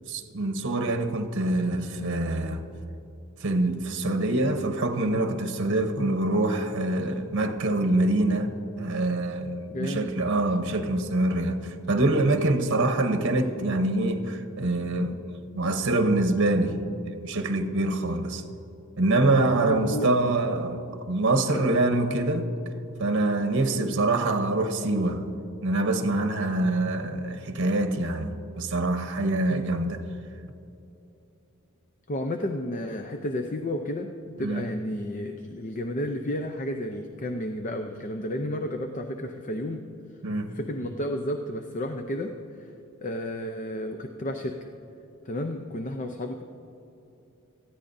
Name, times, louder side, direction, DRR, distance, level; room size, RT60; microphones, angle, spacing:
voice 1, 0.1-2.6 3.4-8.5 8.8-15.2 15.5-16.8 17.1-18.4 19.0-20.8 21.1-22.5 23.0-25.3 25.6-30.0 34.4-34.6 40.2-40.5, right 2 dB, 60° right, 0.9 m, -25 dB
voice 2, 9.7-10.1 19.7-20.1 21.5-21.7 29.5-29.6 32.1-34.1 34.4-39.8 40.5-42.7 43.0-44.7 45.2-46.4, left 1 dB, 35° left, 0.6 m, -32 dB
18.5 x 14.0 x 2.7 m
head